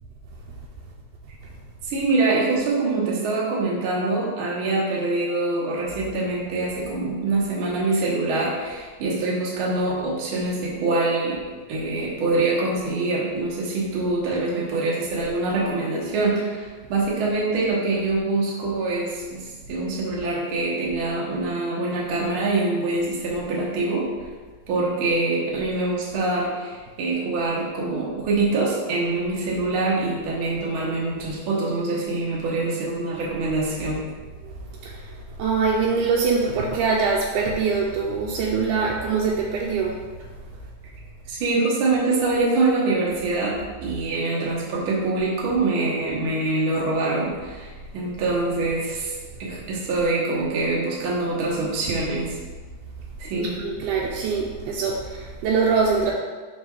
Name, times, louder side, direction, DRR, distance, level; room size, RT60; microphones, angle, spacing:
voice 1, 1.8-11.4 11.7-24.1 24.7-34.0 41.3-43.5 43.8-49.1 49.4-52.4 53.2-53.6, right 3 dB, 60° right, -5 dB, 1.4 m, -24 dB
voice 2, 34.8-35.1 35.4-40.0 53.4-56.1, right 5 dB, 80° right, -3 dB, 2.0 m, -23 dB
5.3 x 4.0 x 4.6 m, 1.4 s
omnidirectional pair, 3.7 m